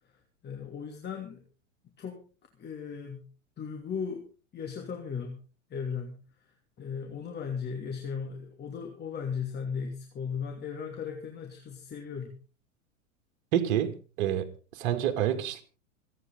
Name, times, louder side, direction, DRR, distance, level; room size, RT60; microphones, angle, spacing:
voice 1, 0.4-1.4 1.8-2.2 2.6-3.2 3.6-4.2 4.5-5.4 5.7-6.2 6.8-12.3, left 6 dB, 25° left, 2.9 m, -36 dB
voice 2, 13.5-15.6, right 10 dB, 55° right, 2.6 m, -28 dB
27.0 x 9.4 x 3.9 m
hypercardioid pair, 100°, 39 cm